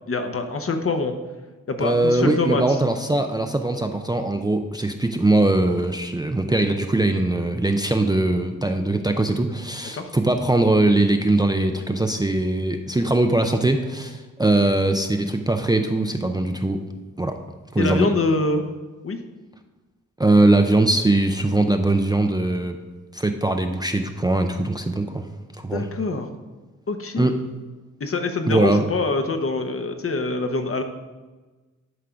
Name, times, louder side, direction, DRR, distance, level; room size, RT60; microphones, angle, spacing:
voice 1, 0.1-1.1 1.7-2.8 9.9-10.1 17.8-18.6 19.0-19.2 25.7-26.3 26.9-27.3 28.0-30.8, left 3 dB, 45° left, 6 dB, 0.9 m, -24 dB
voice 2, 1.8-16.8 17.2-17.3 17.7-18.1 20.2-22.8 23.1-25.2 25.6-25.9 27.2-27.4 28.5-28.8, right 2 dB, 15° right, 5 dB, 0.4 m, -21 dB
11.0 x 3.8 x 5.7 m, 1.2 s
wide cardioid pair, 115°, 31 cm